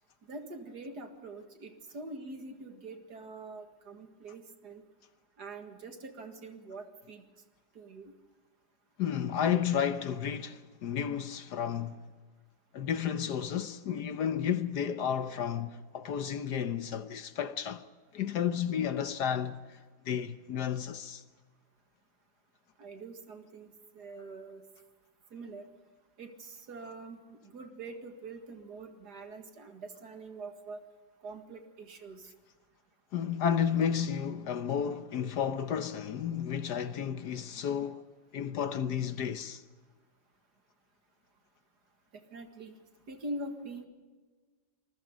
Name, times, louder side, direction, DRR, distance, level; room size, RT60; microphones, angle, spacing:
voice 1, 0.3-4.8 5.4-7.2 7.8-8.1 22.8-23.7 23.9-24.6 25.3-25.7 26.2-30.8 31.2-32.3 42.3-42.7 43.1-43.9, right 2 dB, 60° right, 2.4 m, -44 dB
voice 2, 9.0-12.0 12.7-17.8 18.1-19.8 20.0-21.2 33.1-38.0 38.3-39.6, left 8 dB, 65° left, 1.4 m, -32 dB
27.0 x 21.0 x 5.2 m
omnidirectional pair, 2.0 m